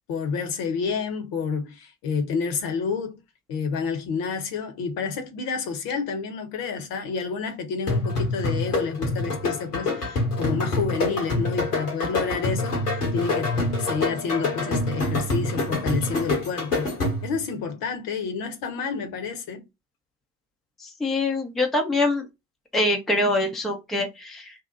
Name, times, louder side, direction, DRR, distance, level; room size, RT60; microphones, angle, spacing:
voice 1, 0.1-3.2 3.5-16.9 17.2-19.6, left 5 dB, 50° left, 0.9 m, -29 dB
sound 1, 7.9-17.4, left 2 dB, 85° left, 1.1 m, -26 dB
voice 2, 20.8-22.3 22.7-24.5, left 2 dB, ahead, 0.6 m, -24 dB
2.7 x 2.1 x 3.7 m
figure-of-eight pair, 55°, 45 cm